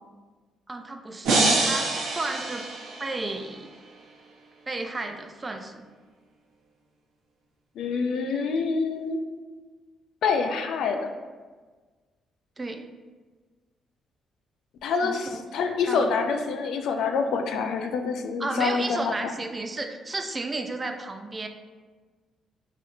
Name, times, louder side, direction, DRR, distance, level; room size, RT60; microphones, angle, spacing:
voice 1, 0.7-2.7 3.0-3.7 4.7-5.8 12.6-12.8 15.0-15.5 15.9-16.2 18.4-21.5, right 2 dB, 25° right, 6 dB, 0.3 m, -33 dB
sound 1, 1.2-3.4, right 2 dB, 80° right, 0.6 m, -25 dB
voice 2, 7.8-9.2 10.2-11.1 14.8-19.3, left 5 dB, 75° left, 5 dB, 0.3 m, -26 dB
4.1 x 2.6 x 2.5 m, 1.4 s
cardioid pair, 90°, 0 cm